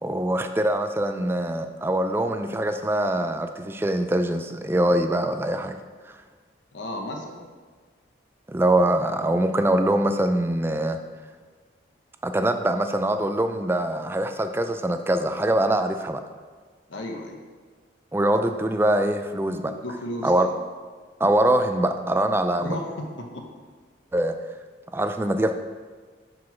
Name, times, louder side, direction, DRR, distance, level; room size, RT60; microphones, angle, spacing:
voice 1, 0.0-5.8 6.1-6.2 8.5-11.0 12.2-16.2 18.1-19.7 20.2-20.5 21.2-22.7 24.1-24.4 24.9-25.6, right 1 dB, 10° right, 8 dB, 0.3 m, -23 dB
voice 2, 6.7-7.4 16.9-17.4 19.6-20.5 22.6-23.5, left 1 dB, 85° left, 2 dB, 1.0 m, -34 dB
6.2 x 4.7 x 5.8 m, 1.5 s
head